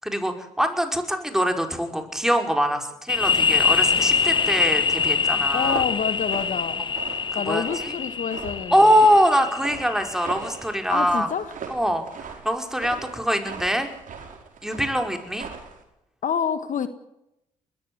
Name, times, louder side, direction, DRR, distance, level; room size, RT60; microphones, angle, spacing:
voice 1, 0.0-5.8 7.3-7.9 8.7-11.3 11.7-12.0 12.4-13.9 14.6-15.5, equal, 5° right, 5 dB, 5.3 m, -23 dB
sound 1, 3.1-10.6, left 5 dB, 35° left, 0.9 m, -24 dB
sound 2, 3.4-15.8, right 6 dB, 65° right, 5.1 m, -40 dB
voice 2, 5.5-6.8 7.3-9.0 10.9-11.5 16.2-16.9, left 7 dB, 60° left, 11 dB, 1.6 m, -27 dB
21.0 x 15.5 x 9.7 m, 0.85 s
supercardioid pair, 50°, 15 cm